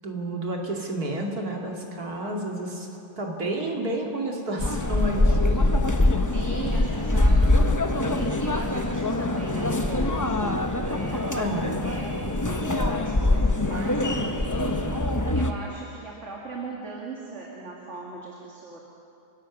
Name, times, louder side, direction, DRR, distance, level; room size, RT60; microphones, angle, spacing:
voice 1, 0.0-2.9 3.2-5.9 11.4-11.8, right 1 dB, 60° right, 0 dB, 3.0 m, -30 dB
sound 1, 4.6-15.5, left 2 dB, 15° left, 0.6 m, -23 dB
voice 2, 6.3-14.8 15.3-18.8, right 4 dB, 40° right, -3 dB, 2.5 m, -38 dB
30.0 x 16.5 x 6.2 m, 2.8 s
omnidirectional pair, 1.8 m